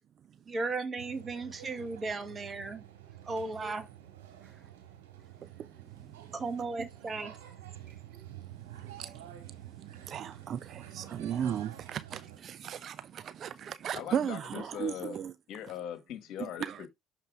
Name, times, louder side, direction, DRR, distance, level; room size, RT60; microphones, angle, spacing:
voice 1, 0.5-2.8 3.3-3.9 6.3-7.3, right 3 dB, 35° right, 1.4 m, -35 dB
sound 1, 1.0-12.4, right 12 dB, 85° right, 1.8 m, -49 dB
voice 2, 9.8-15.3 16.6-16.8, right 9 dB, 55° right, 0.4 m, -36 dB
voice 3, 13.9-15.2 15.5-16.9, left 10 dB, 65° left, 1.5 m, -40 dB
6.7 x 4.5 x 3.4 m
hypercardioid pair, 65°, 0 cm